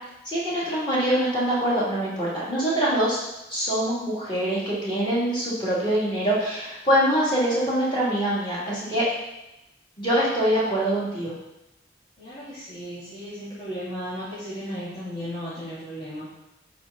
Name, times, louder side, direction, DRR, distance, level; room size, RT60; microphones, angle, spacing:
voice 1, 0.2-9.0 10.0-11.3, right 1 dB, 25° left, -8 dB, 2.8 m, -24 dB
voice 2, 12.2-16.3, equal, 45° left, -13 dB, 3.0 m, -35 dB
8.6 x 5.1 x 4.2 m, 0.93 s
head